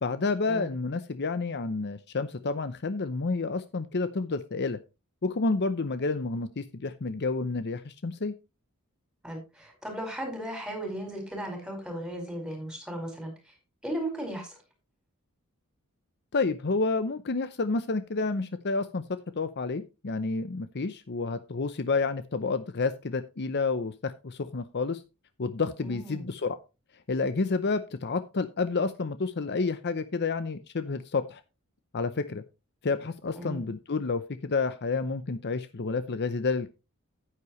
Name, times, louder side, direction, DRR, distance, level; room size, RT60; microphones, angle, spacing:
voice 1, 0.0-4.8 5.2-8.3 16.3-19.0 19.4-25.0 25.4-26.6 27.1-31.4 31.9-32.4 32.8-36.7, left 3 dB, 50° left, 12 dB, 0.7 m, -29 dB
voice 2, 9.2-13.5 13.8-14.6 25.8-26.2 33.3-33.6, right 1 dB, 5° right, 2 dB, 4.8 m, -36 dB
9.8 x 9.8 x 3.1 m, 0.28 s
head